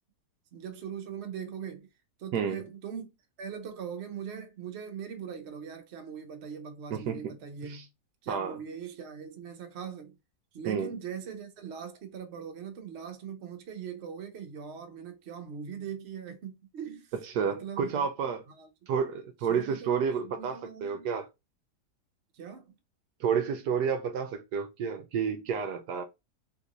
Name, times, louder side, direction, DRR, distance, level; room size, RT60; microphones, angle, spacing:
voice 1, 0.5-1.9 2.2-3.1 3.4-7.9 8.2-10.2 10.5-17.1 17.4-18.1 18.5-18.7 19.5-21.1 22.3-22.8 25.9-26.0, right 7 dB, 50° right, 0.9 m, -41 dB
voice 2, 6.9-7.4 7.6-7.8 8.3-8.6 10.7-10.9 17.2-18.4 18.9-21.3 23.2-26.0, right 6 dB, 75° right, 1.1 m, -30 dB
3.5 x 2.6 x 2.9 m
omnidirectional pair, 1.8 m